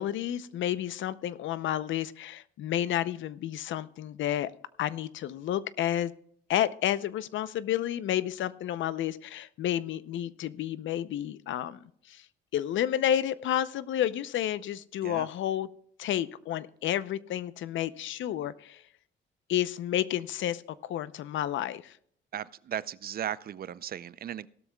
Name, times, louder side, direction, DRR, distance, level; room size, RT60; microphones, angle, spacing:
voice 1, 0.0-4.5 4.8-6.1 6.5-12.3 12.5-15.7 16.0-18.8 19.5-22.0, left 11 dB, 75° left, 16 dB, 0.6 m, -31 dB
voice 2, 22.3-24.5, right 10 dB, 50° right, 18 dB, 0.5 m, -36 dB
17.0 x 12.5 x 2.3 m, 0.65 s
cardioid pair, 90°, 20 cm